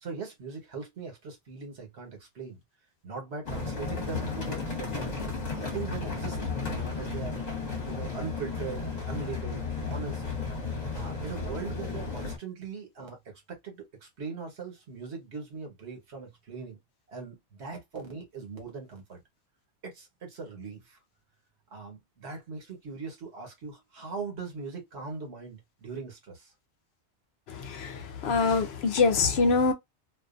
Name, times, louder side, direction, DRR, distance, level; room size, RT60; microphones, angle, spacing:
voice 1, 0.0-2.6 3.0-5.1 5.5-6.4 6.7-7.4 7.9-10.2 10.9-16.8 17.1-19.2 19.8-21.0 21.7-26.5, right 4 dB, 70° right, 1.3 m, -40 dB
sound 1, 3.5-12.4, left 4 dB, 40° left, 1.0 m, -34 dB
voice 2, 27.5-29.7, left 4 dB, 70° left, 0.8 m, -25 dB
2.5 x 2.4 x 2.4 m
omnidirectional pair, 1.2 m